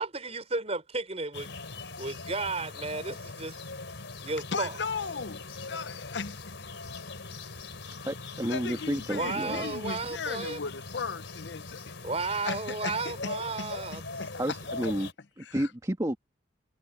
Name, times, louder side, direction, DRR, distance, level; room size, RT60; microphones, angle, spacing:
voice 1, 0.0-1.5 2.0-3.6 4.2-4.8 9.1-10.6 12.0-14.0, right 3 dB, 35° right, 4.9 m, -33 dB
sound 1, 1.3-15.1, left 3 dB, 80° left, 3.7 m, -41 dB
voice 2, 4.5-6.7 8.5-11.9 12.4-14.6 15.5-15.7, left 5 dB, 65° left, 0.8 m, -37 dB
voice 3, 8.0-9.6 14.4-15.1 15.4-16.2, equal, 20° right, 1.9 m, -31 dB
head